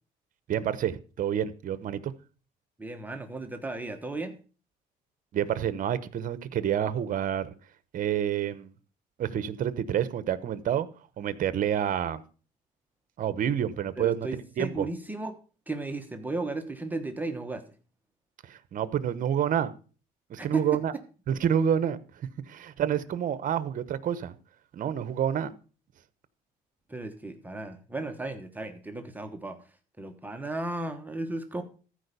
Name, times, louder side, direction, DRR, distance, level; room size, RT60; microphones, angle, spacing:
voice 1, 0.5-2.1 5.3-7.5 7.9-8.7 9.2-10.9 11.2-12.2 13.2-14.9 18.5-19.7 20.3-20.9 21.3-22.0 22.5-24.3 24.7-25.5, right 9 dB, 50° right, 1.0 m, -28 dB
voice 2, 2.8-4.4 13.9-15.4 15.7-17.6 20.4-20.8 26.9-29.6 30.0-31.6, right 2 dB, 10° right, 1.2 m, -35 dB
14.5 x 4.8 x 6.8 m
cardioid pair, 110°, 17 cm